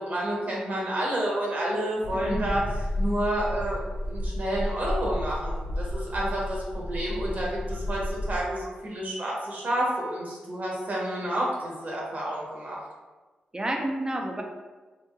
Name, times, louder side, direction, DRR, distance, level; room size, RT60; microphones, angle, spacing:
voice 1, 0.0-2.6 3.0-12.8, right 1 dB, 55° right, -4 dB, 0.9 m, -30 dB
sound 1, 2.0-8.5, left 1 dB, 60° left, 0.5 m, -32 dB
voice 2, 2.1-2.6 13.5-14.4, right 1 dB, 25° right, 2 dB, 0.5 m, -30 dB
2.9 x 2.7 x 2.3 m, 1.3 s
supercardioid pair, 40°, 3 cm